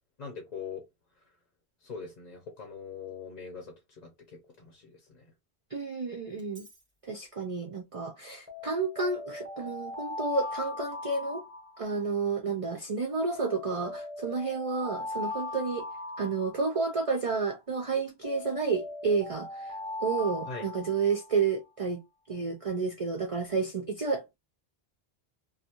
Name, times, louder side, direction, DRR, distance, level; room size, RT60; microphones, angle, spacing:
voice 1, 0.2-0.8 1.8-3.7 4.0-4.1 4.6-5.2 20.4-20.6, left 5 dB, 45° left, 0.8 m, -41 dB
voice 2, 5.7-6.7 7.0-11.4 11.8-15.8 16.2-22.0 22.3-24.4, right 4 dB, 45° right, 0.5 m, -31 dB
Alarm, 6.4-6.8 8.5-12.2 13.4-17.1 18.2-21.4, left 2 dB, 10° right, 0.7 m, -39 dB
2.5 x 2.5 x 2.8 m
omnidirectional pair, 1.1 m